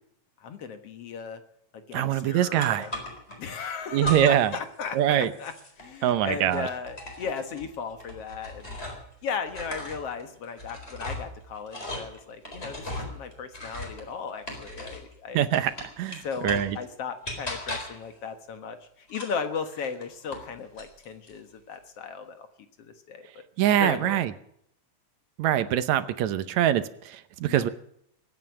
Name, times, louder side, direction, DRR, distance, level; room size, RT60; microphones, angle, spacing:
voice 1, 0.4-1.4 1.7-3.0 3.4-8.8 9.2-15.5 16.2-22.5 22.8-23.4 23.8-24.2 27.5-27.6, left 6 dB, 60° left, 8 dB, 2.2 m, -36 dB
voice 2, 1.9-2.9 3.9-4.5 5.0-5.3 6.0-6.7 15.3-15.7 16.0-16.8 23.6-24.3 25.4-27.7, right 11 dB, 75° right, 13 dB, 2.1 m, -24 dB
sound 1, 2.6-3.4 4.0-4.6 4.9-9.1 9.5-15.1 15.5-16.8 17.2-18.1 19.1-20.5 20.8-21.4, left 1 dB, 20° left, 4.4 m, -38 dB
23.0 x 9.4 x 6.3 m, 0.70 s
omnidirectional pair, 3.3 m